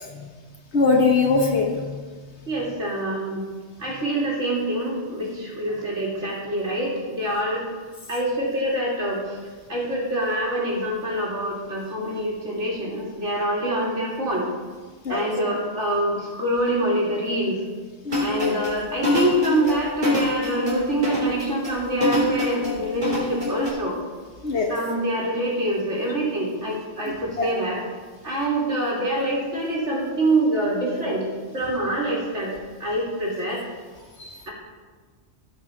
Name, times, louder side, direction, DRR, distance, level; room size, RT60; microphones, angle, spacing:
voice 1, 0.7-1.8 15.0-15.3 18.0-18.2 24.4-24.7 27.4-27.5 34.2-34.4, left 4 dB, 70° left, 1 dB, 1.5 m, -21 dB
voice 2, 2.5-3.4 3.8-7.6 8.1-9.4 9.7-14.4 15.1-17.6 18.2-23.9 24.7-27.8 28.2-31.3 31.5-32.5 32.8-33.6, right 1 dB, 85° right, -4 dB, 3.1 m, -25 dB
sound 1, 18.1-23.7, left 2 dB, 40° right, 3.4 m, -24 dB
16.5 x 5.5 x 5.1 m, 1.5 s
omnidirectional pair, 1.2 m